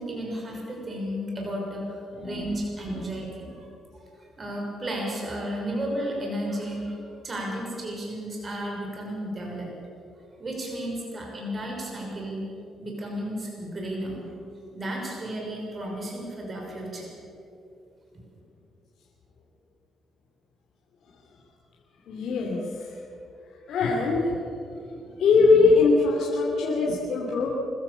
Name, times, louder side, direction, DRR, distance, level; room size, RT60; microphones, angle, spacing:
voice 1, 0.0-3.7 3.9-9.7 10.4-12.5 12.8-14.2 14.7-17.1, right 1 dB, 35° right, -1 dB, 6.2 m, -33 dB
voice 2, 22.1-22.9 23.7-24.3 25.2-27.5, left 4 dB, 70° left, -2 dB, 3.0 m, -21 dB
25.5 x 14.5 x 7.2 m, 2.8 s
cardioid pair, 90°, 0 cm